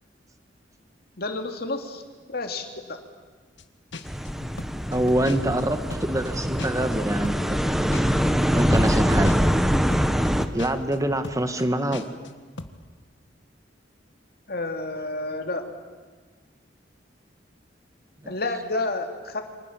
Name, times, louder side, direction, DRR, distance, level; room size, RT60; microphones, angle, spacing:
voice 1, 1.2-2.0 2.3-3.0 14.5-15.7 18.3-19.4, left 2 dB, 55° left, 5 dB, 2.9 m, -30 dB
sound 1, 3.6-3.7 3.9-7.0 7.2-12.3 12.6-12.8, left 2 dB, 75° left, 1.6 m, -39 dB
sound 2, 4.1-10.5, equal, ahead, 1.2 m, -23 dB
voice 2, 4.9-7.3 8.5-9.3 10.5-12.0 18.2-18.3, right 1 dB, 20° right, 9 dB, 1.5 m, -25 dB
29.0 x 25.5 x 7.4 m, 1.5 s
head